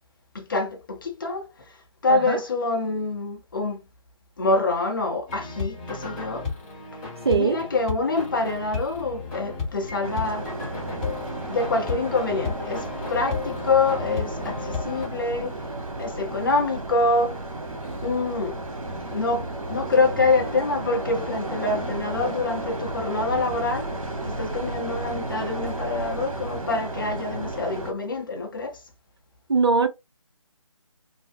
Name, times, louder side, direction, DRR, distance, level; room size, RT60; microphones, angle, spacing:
voice 1, 0.3-1.5 2.0-3.8 4.4-6.5 7.3-10.5 11.5-15.5 16.0-17.4 18.0-18.6 18.9-23.9 24.2-28.8, left 3 dB, 40° left, 0.6 m, -26 dB
voice 2, 2.1-2.4 7.2-7.6 29.5-29.9, right 4 dB, 50° right, 0.5 m, -21 dB
sound 1, 5.3-15.1, left 4 dB, 15° left, 1.0 m, -34 dB
sound 2, 8.4-26.7, right 4 dB, 20° right, 1.0 m, -48 dB
sound 3, 10.0-27.9, right 2 dB, 80° right, 0.9 m, -33 dB
2.7 x 2.0 x 3.3 m
figure-of-eight pair, 150°, 17 cm